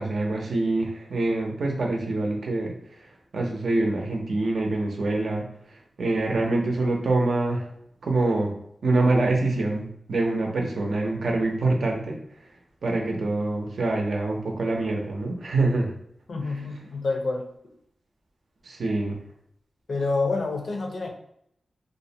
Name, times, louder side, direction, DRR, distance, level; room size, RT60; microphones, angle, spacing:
voice 1, 0.0-7.7 8.0-8.6 8.8-12.2 12.8-15.9 18.6-19.2, right 2 dB, 75° right, 0 dB, 0.5 m, -25 dB
voice 2, 16.3-17.5 19.9-21.1, left 3 dB, 70° left, 2 dB, 0.5 m, -27 dB
2.4 x 2.1 x 2.7 m, 0.72 s
wide cardioid pair, 95°, 0 cm